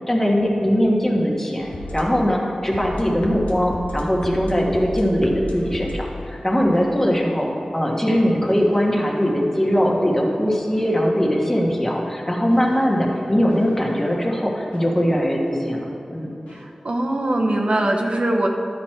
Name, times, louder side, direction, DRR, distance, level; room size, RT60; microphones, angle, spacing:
voice 1, 0.1-16.3, equal, 20° left, -2 dB, 1.5 m, -21 dB
sound 1, 1.6-7.6 8.5-11.7 12.5-15.6 16.5-16.6, left 1 dB, 90° left, 1.0 m, -37 dB
voice 2, 16.5-18.5, right 1 dB, 55° right, 2 dB, 0.8 m, -22 dB
11.0 x 6.2 x 4.4 m, 2.7 s
wide cardioid pair, 60°, 2 cm